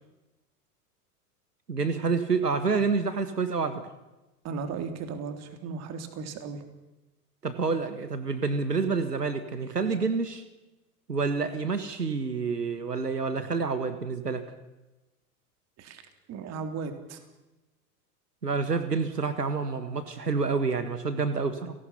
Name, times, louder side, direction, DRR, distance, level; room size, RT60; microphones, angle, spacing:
voice 1, 1.7-3.9 7.4-10.4 11.1-14.4 18.4-21.7, right 4 dB, 85° right, 11 dB, 1.8 m, -28 dB
voice 2, 4.4-6.6 15.8-16.0 16.3-17.2, right 5 dB, 35° right, 8 dB, 3.5 m, -36 dB
29.5 x 18.5 x 5.9 m, 1.0 s
figure-of-eight pair, 90°, 46 cm